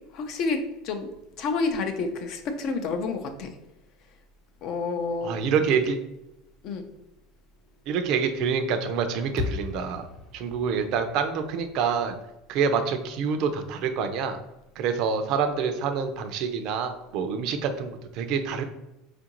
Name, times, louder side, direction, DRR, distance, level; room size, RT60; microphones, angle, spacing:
voice 1, 0.1-1.1 1.4-3.5 4.6-5.4 6.6-6.9, left 4 dB, 50° left, 6 dB, 0.5 m, -29 dB
voice 2, 5.2-6.0 7.9-10.1 10.3-12.1 12.5-14.4 14.8-18.6, right 6 dB, 50° right, 7 dB, 0.4 m, -26 dB
sound 1, 9.4-13.6, left 5 dB, 20° left, 1.0 m, -38 dB
4.5 x 2.5 x 2.9 m, 0.93 s
supercardioid pair, 150°, 0 cm